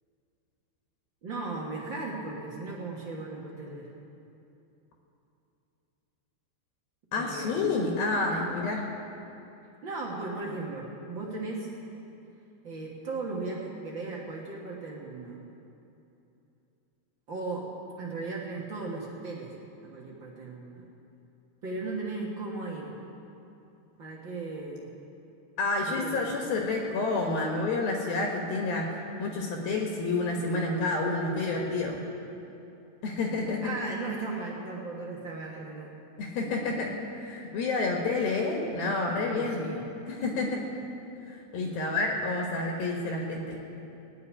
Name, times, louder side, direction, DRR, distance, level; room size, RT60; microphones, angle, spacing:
voice 1, 1.2-3.9 7.2-7.5 9.8-11.7 12.6-15.4 17.3-17.6 18.0-19.5 19.8-20.8 21.6-22.9 24.0-24.9 25.9-26.3 33.6-35.9 39.3-39.8, right 3 dB, 70° right, -3 dB, 1.1 m, -36 dB
voice 2, 7.1-8.9 25.6-32.0 33.0-33.6 36.2-39.6 40.1-40.6 41.3-43.6, left 3 dB, 65° left, 0 dB, 3.0 m, -29 dB
18.5 x 6.8 x 9.8 m, 2.8 s
omnidirectional pair, 4.8 m